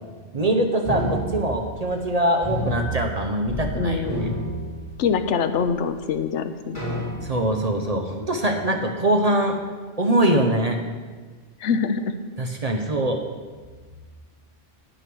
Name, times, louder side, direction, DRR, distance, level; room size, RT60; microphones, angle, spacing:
voice 1, 0.3-4.0 7.2-9.6 10.0-10.8 12.4-13.2, right 1 dB, 40° right, 3 dB, 0.7 m, -23 dB
sound 1, 0.8-2.1 2.4-3.7 4.0-5.3 5.9-6.0 6.7-7.6, equal, 30° left, 3.7 m, -29 dB
voice 2, 3.7-4.4 5.0-6.8 11.6-12.0, left 6 dB, 75° left, 9 dB, 0.9 m, -24 dB
9.2 x 6.4 x 6.1 m, 1.4 s
omnidirectional pair, 1.3 m